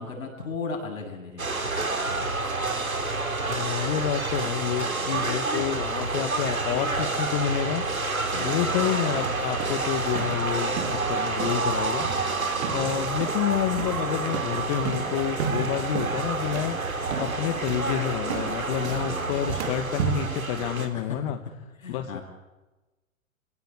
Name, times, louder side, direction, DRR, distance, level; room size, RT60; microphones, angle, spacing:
voice 1, 0.0-1.6 8.3-8.8 19.0-19.8 20.9-21.2 21.8-22.2, left 4 dB, 75° left, 1 dB, 7.9 m, -37 dB
sound 1, 1.4-20.9, right 3 dB, 85° right, 3.3 m, -29 dB
voice 2, 3.3-7.8 8.4-12.1 12.7-16.8 17.2-21.4 21.9-22.2, left 11 dB, 40° left, 8 dB, 1.5 m, -29 dB
sound 2, 9.1-20.3, right 8 dB, 55° right, 2.2 m, -35 dB
27.5 x 17.5 x 8.4 m, 1.1 s
figure-of-eight pair, 105°, 40 cm